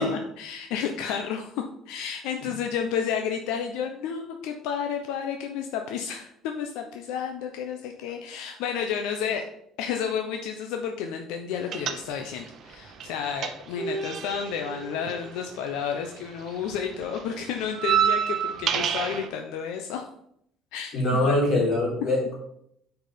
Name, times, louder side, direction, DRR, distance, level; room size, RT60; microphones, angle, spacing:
voice 1, 0.0-9.4 9.8-20.1 20.7-21.7, left 7 dB, 85° left, 4 dB, 0.8 m, -31 dB
sound 1, 11.7-12.5 12.7-16.1 16.4-19.3, right 8 dB, 40° right, 0.8 m, -28 dB
voice 2, 20.9-22.3, left 1 dB, 40° left, -3 dB, 3.9 m, -23 dB
9.3 x 4.8 x 5.1 m, 0.73 s
cardioid pair, 170°, 0 cm